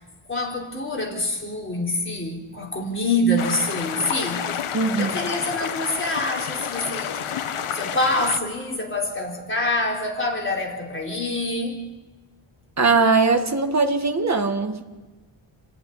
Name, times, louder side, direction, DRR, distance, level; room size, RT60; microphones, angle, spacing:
voice 1, 0.3-7.2 7.7-11.9, left 1 dB, 25° left, 3.9 m, -26 dB
sound 1, 3.4-8.4, left 8 dB, 85° left, 1.2 m, -29 dB
voice 2, 4.7-5.2 12.8-14.8, right 4 dB, 35° right, 1.7 m, -20 dB
28.5 x 11.5 x 9.9 m
wide cardioid pair, 155°, 49 cm